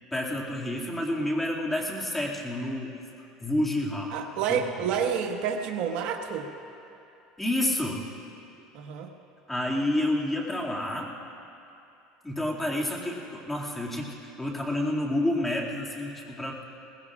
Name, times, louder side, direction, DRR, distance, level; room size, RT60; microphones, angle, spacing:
voice 1, 0.1-2.9 3.4-4.1 4.5-4.9 7.4-8.0 9.5-11.1 12.2-16.6, left 1 dB, 10° left, -3 dB, 2.3 m, -29 dB
voice 2, 4.1-6.5 8.7-9.1, right 7 dB, 60° right, 2 dB, 1.4 m, -29 dB
22.0 x 19.5 x 2.5 m, 2.7 s
supercardioid pair, 120°, 2 cm